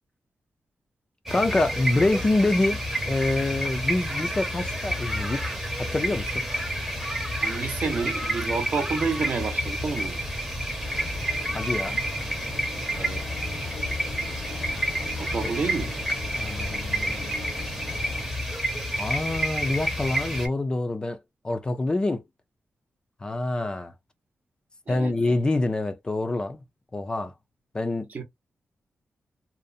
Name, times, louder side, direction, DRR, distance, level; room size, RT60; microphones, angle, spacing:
sound 1, 1.2-20.5, equal, 5° right, 0.7 m, -29 dB
voice 1, 1.3-5.4 5.7-6.4 11.5-12.0 16.3-17.4 18.9-21.2 21.4-22.2 23.2-23.9 24.9-26.6 26.9-27.3 27.7-28.1, left 2 dB, 20° left, 0.3 m, -26 dB
voice 2, 7.4-10.2 13.0-13.2 15.2-15.9 24.9-25.3 28.1-28.2, right 4 dB, 45° right, 0.7 m, -29 dB
sound 2, 9.8-18.2, left 2 dB, 90° left, 1.0 m, -41 dB
2.6 x 2.0 x 2.4 m
wide cardioid pair, 160°, 4 cm